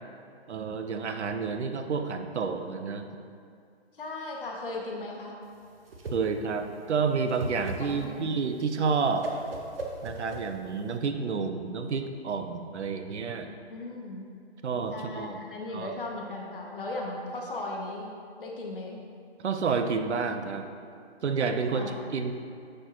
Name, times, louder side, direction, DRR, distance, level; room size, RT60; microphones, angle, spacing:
voice 1, 0.5-3.0 6.1-9.3 10.0-13.5 14.6-15.4 15.7-15.9 19.4-20.7 21.2-22.3, right 5 dB, 80° right, 7 dB, 0.7 m, -30 dB
voice 2, 4.0-5.3 7.9-8.3 13.7-14.3 14.9-18.1 18.4-19.0 21.7-21.9, left 2 dB, 50° left, -1 dB, 1.2 m, -37 dB
Whoosh swoosh swish, 5.5-11.0, right 2 dB, 60° right, 1.0 m, -38 dB
9.6 x 4.4 x 3.0 m, 2.3 s
hypercardioid pair, 175°, 33 cm